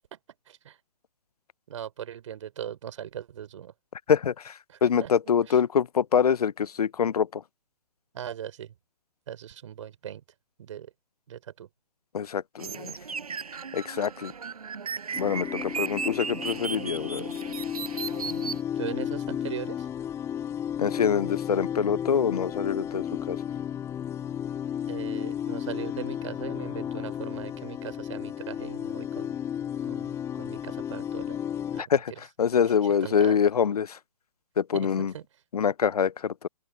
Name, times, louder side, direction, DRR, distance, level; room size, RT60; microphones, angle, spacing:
voice 1, 0.5-0.8 1.7-3.7 4.7-5.1 5.5-5.6 8.1-8.7 9.3-10.2 10.6-10.9 11.3-11.7 18.8-19.9 24.9-29.3 29.9-31.4 31.7-31.9 32.6-33.4 34.7-35.2, right 10 dB, 55° right, 4.4 m, -39 dB
voice 2, 4.1-7.4 12.1-13.0 13.7-14.3 15.2-17.2 20.8-23.4 31.8-32.1 32.4-34.0 34.6-35.1 35.5-36.5, left 7 dB, 75° left, 0.6 m, -25 dB
sound 1, 12.6-18.6, right 5 dB, 70° right, 6.1 m, -36 dB
sound 2, 15.1-31.8, left 9 dB, 15° left, 3.2 m, -33 dB
open air
figure-of-eight pair, 135°, 20 cm